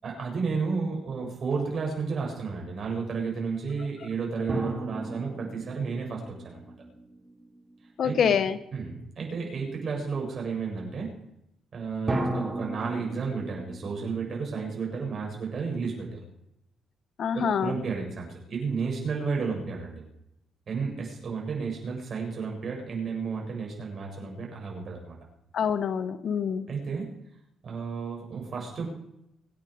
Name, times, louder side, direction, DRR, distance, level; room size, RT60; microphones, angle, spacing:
voice 1, 0.0-6.7 8.0-8.3 8.7-11.1 11.7-16.2 17.3-20.0 20.7-25.2 26.7-27.1 27.6-28.9, right 5 dB, 50° right, 0 dB, 7.3 m, -32 dB
sound 1, 4.5-7.9 12.1-15.4, right 2 dB, 30° right, 4.4 m, -35 dB
voice 2, 8.0-8.6 17.2-17.8 25.5-26.7, left 7 dB, 60° left, 13 dB, 1.1 m, -26 dB
25.5 x 9.5 x 5.1 m, 0.81 s
cardioid pair, 90°, 0 cm